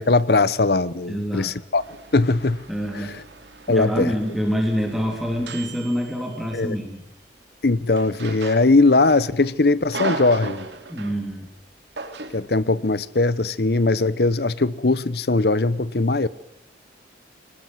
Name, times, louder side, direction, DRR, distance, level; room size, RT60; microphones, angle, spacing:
voice 1, 0.0-1.8 2.1-2.6 2.9-3.2 3.7-4.1 6.5-6.8 7.6-10.7 12.3-16.3, left 3 dB, 60° left, 0.8 m, -20 dB
voice 2, 1.1-1.5 2.7-3.2 3.7-7.0 10.9-11.5, equal, ahead, 3.0 m, -26 dB
sound 1, 1.7-6.7 7.9-9.2 9.5-11.2 12.0-12.5, right 3 dB, 75° right, 3.1 m, -36 dB
24.5 x 19.5 x 8.0 m
head